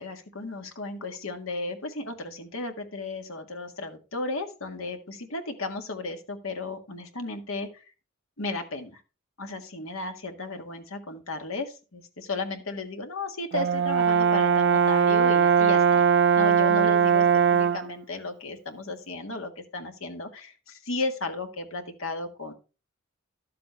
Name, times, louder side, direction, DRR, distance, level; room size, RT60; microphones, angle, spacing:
voice 1, 0.0-7.8 8.4-9.0 9.4-16.1 16.4-22.5, left 3 dB, 75° left, 5 dB, 1.8 m, -34 dB
Brass instrument, 13.5-17.9, right 6 dB, 55° right, 0.4 m, -20 dB
12.5 x 7.6 x 3.2 m, 0.32 s
head